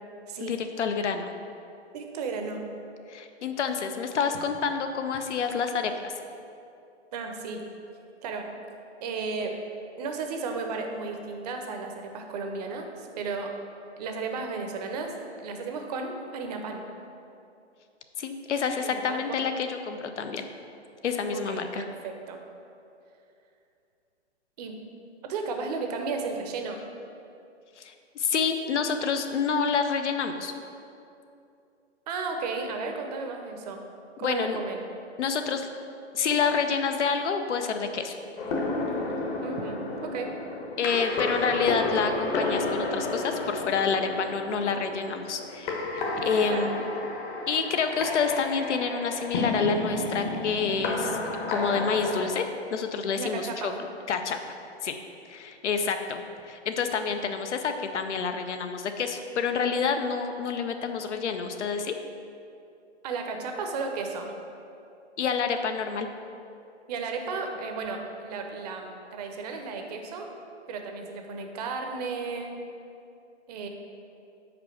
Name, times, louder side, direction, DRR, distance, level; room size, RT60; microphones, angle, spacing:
voice 1, 0.4-1.3 3.1-6.1 18.2-20.5 21.0-21.8 27.8-30.5 34.2-34.6 35.2-35.7 36.1-38.2 40.8-46.8 47.5-51.2 51.5-53.7 54.1-54.5 54.8-55.0 55.3-61.9 65.2-66.1, left 5 dB, 80° left, 6 dB, 0.7 m, -28 dB
voice 2, 1.9-2.6 7.1-7.6 8.2-8.4 9.0-9.6 10.0-13.5 14.0-15.1 15.4-16.8 18.8-19.4 21.3-22.4 24.6-24.9 25.2-26.8 32.1-33.8 34.2-34.9 39.4-40.4 46.5-46.7 53.2-53.7 63.0-64.3 66.9-70.3 70.7-72.5 73.5-73.7, right 4 dB, 35° right, 3 dB, 0.6 m, -34 dB
sound 1, 38.4-52.3, left 2 dB, 45° left, 1.1 m, -31 dB
5.2 x 4.3 x 5.7 m, 2.6 s
hypercardioid pair, 135°, 35 cm